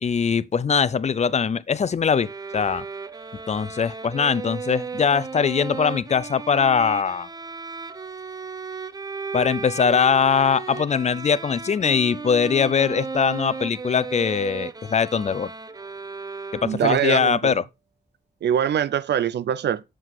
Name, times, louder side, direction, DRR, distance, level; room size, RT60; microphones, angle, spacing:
voice 1, 0.0-2.8 3.5-7.3 9.3-15.5 16.5-17.6, left 6 dB, 40° left, 0.6 m, -22 dB
sound 1, 2.1-17.1, right 4 dB, 20° right, 0.7 m, -35 dB
voice 2, 16.6-17.5 18.4-19.8, right 9 dB, 80° right, 0.7 m, -23 dB
7.9 x 7.6 x 4.7 m
wide cardioid pair, 130°, 17 cm